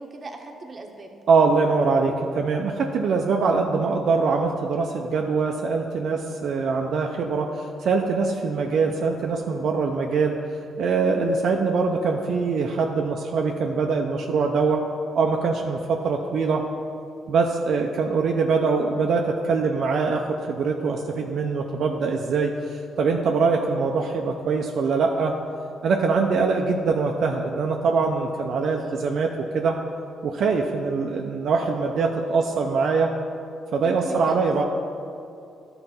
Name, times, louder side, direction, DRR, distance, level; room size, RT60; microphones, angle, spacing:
voice 1, 0.0-1.1 28.8-29.0 33.8-34.6, right 2 dB, 35° right, 2 dB, 1.1 m, -37 dB
voice 2, 1.3-10.4 10.8-14.8 15.1-16.6 17.3-25.4 25.8-29.8 30.2-33.1 33.7-34.6, right 4 dB, 65° right, 2 dB, 0.5 m, -23 dB
11.5 x 3.9 x 5.6 m, 2.6 s
cardioid pair, 90°, 0 cm